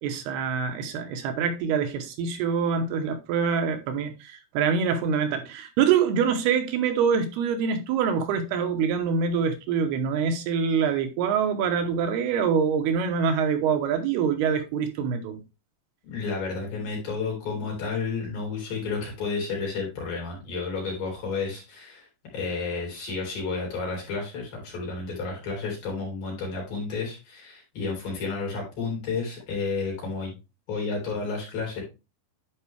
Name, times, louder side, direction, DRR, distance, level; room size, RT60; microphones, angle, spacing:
voice 1, 0.0-15.4, right 6 dB, 80° right, 2.9 m, -25 dB
voice 2, 16.0-22.1 22.3-30.4 30.7-31.8, left 4 dB, 60° left, 5.3 m, -31 dB
11.0 x 4.6 x 3.2 m
omnidirectional pair, 4.7 m